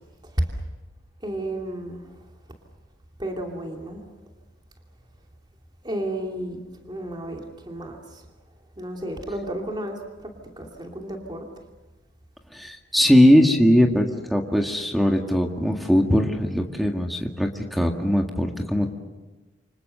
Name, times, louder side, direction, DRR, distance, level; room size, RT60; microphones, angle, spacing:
voice 1, 1.2-2.0 3.2-4.0 5.8-8.0 8.8-10.0 10.6-11.5, right 1 dB, 25° right, 1 dB, 2.8 m, -31 dB
voice 2, 12.5-18.9, equal, ahead, 1 dB, 1.9 m, -20 dB
28.5 x 26.0 x 6.8 m, 1.2 s
head